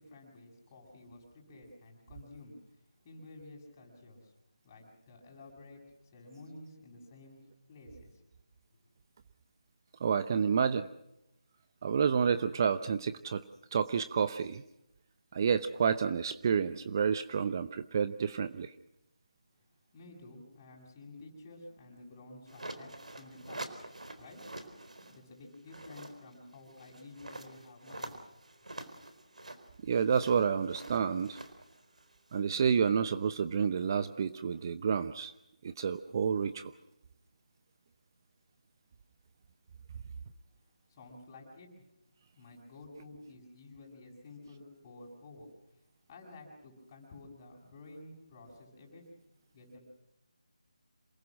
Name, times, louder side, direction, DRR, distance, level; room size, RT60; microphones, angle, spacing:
voice 1, 0.0-2.5 3.0-4.3 4.6-5.8 6.1-7.4 7.7-8.2 19.9-23.6 24.2-24.4 25.0-28.2 40.9-41.7 42.4-45.8 46.1-49.0 49.5-49.8, left 2 dB, 25° left, 1 dB, 7.1 m, -52 dB
voice 2, 10.0-10.9 11.8-13.4 13.7-14.6 15.3-18.7 29.8-31.4 32.3-35.3 35.6-36.7, right 6 dB, 30° right, 12 dB, 0.7 m, -29 dB
sound 1, 22.5-25.2 25.5-32.6, right 2 dB, 80° right, 4.3 m, -46 dB
27.5 x 20.5 x 6.3 m, 0.85 s
figure-of-eight pair, 165°, 4 cm